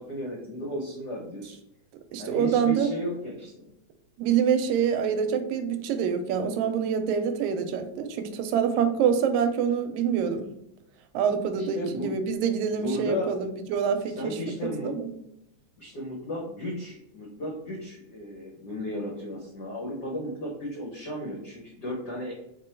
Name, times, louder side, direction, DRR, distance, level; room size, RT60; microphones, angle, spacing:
voice 1, 0.0-1.6 2.2-3.7 11.4-12.2 12.7-13.4 14.1-15.0 15.8-22.3, left 1 dB, 75° left, -3 dB, 0.9 m, -34 dB
voice 2, 2.1-2.9 4.2-10.5 11.1-14.4 14.8-15.1, right 7 dB, 85° right, 8 dB, 1.9 m, -26 dB
4.7 x 2.2 x 4.3 m, 0.81 s
omnidirectional pair, 3.3 m